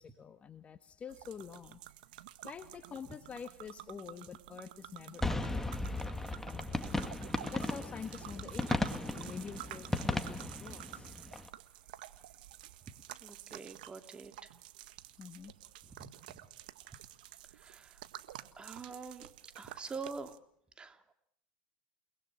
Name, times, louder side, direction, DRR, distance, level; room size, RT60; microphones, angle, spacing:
voice 1, 0.0-1.8 2.4-5.8 6.3-7.0 7.5-11.1 15.2-15.5, left 6 dB, 25° left, 9 dB, 1.5 m, -47 dB
sound 1, 1.1-20.4, right 14 dB, 70° right, 1.7 m, -50 dB
sound 2, 5.2-11.5, left 2 dB, 5° left, 2.1 m, -36 dB
voice 2, 13.2-14.5 16.0-16.1 17.6-17.9 18.6-19.3 19.5-20.3 20.8-21.1, right 4 dB, 20° right, 7 dB, 2.8 m, -45 dB
30.0 x 20.5 x 6.2 m, 0.72 s
hypercardioid pair, 95°, 5 cm